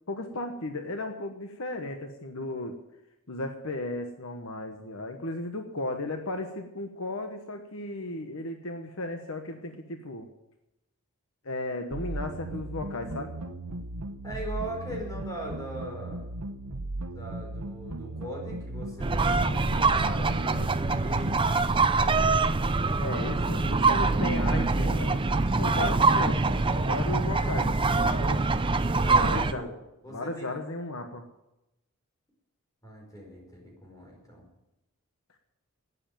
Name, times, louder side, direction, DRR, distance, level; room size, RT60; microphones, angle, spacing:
voice 1, 0.1-2.8 3.3-10.3 11.4-13.3 23.0-28.5 29.2-29.6 30.1-31.2, left 2 dB, 65° left, 5 dB, 1.2 m, -35 dB
sound 1, 11.9-21.5, right 2 dB, 85° right, 1.0 m, -37 dB
voice 2, 14.2-16.2 17.1-21.4 28.8-29.7 30.0-30.5 32.8-34.4, right 1 dB, 15° left, -1 dB, 5.1 m, -39 dB
sound 2, 19.0-29.5, right 3 dB, 20° right, 0.6 m, -24 dB
12.0 x 9.9 x 9.1 m, 0.92 s
head